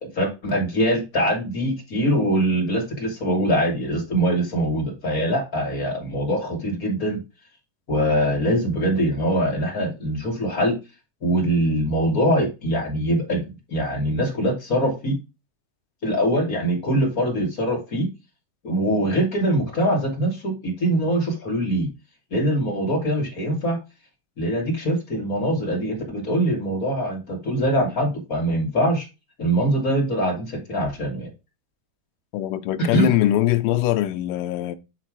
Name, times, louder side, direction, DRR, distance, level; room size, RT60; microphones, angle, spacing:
voice 1, 0.0-7.2 7.9-10.8 11.2-13.4 13.7-15.2 16.0-18.1 18.6-21.9 22.3-23.8 24.4-29.1 29.4-31.3 32.8-33.1, right 1 dB, 35° left, 1.7 m, -23 dB
voice 2, 32.3-34.8, left 13 dB, 80° left, 2.2 m, -22 dB
9.4 x 3.3 x 4.8 m
omnidirectional pair, 3.9 m